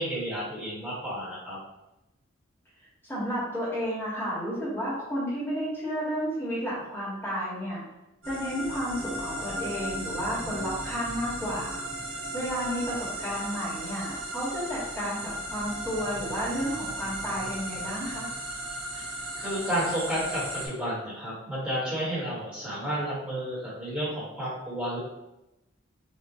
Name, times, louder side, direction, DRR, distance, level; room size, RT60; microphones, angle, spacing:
voice 1, 0.0-1.6 18.9-19.1 19.4-25.0, equal, 5° right, -8 dB, 1.2 m, -31 dB
voice 2, 3.0-7.8 8.3-11.8 12.3-18.3, equal, 10° left, -8 dB, 1.2 m, -32 dB
sound 1, 8.2-20.7, right 1 dB, 75° right, 1.3 m, -36 dB
5.4 x 2.3 x 2.7 m, 0.93 s
head